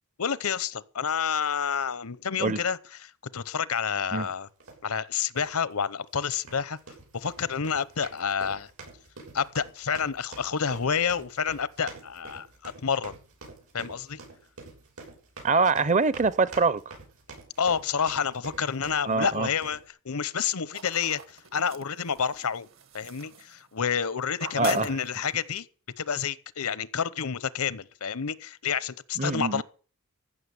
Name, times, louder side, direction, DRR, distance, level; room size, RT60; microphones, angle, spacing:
voice 1, 0.2-4.5 4.8-6.8 7.1-8.7 9.3-13.1 13.7-14.2 17.6-19.8 20.0-22.7 22.9-25.7 26.0-29.6, left 7 dB, 85° left, 0.8 m, -29 dB
sound 1, 4.6-4.8 5.3-5.6 6.3-19.9, right 3 dB, 90° right, 7.4 m, -47 dB
voice 2, 15.4-16.8 19.0-19.5 24.6-25.0 29.2-29.6, right 4 dB, 35° right, 0.6 m, -24 dB
sound 2, 20.7-24.0 24.3-25.5, right 6 dB, 65° right, 1.6 m, -44 dB
15.0 x 6.7 x 9.7 m
head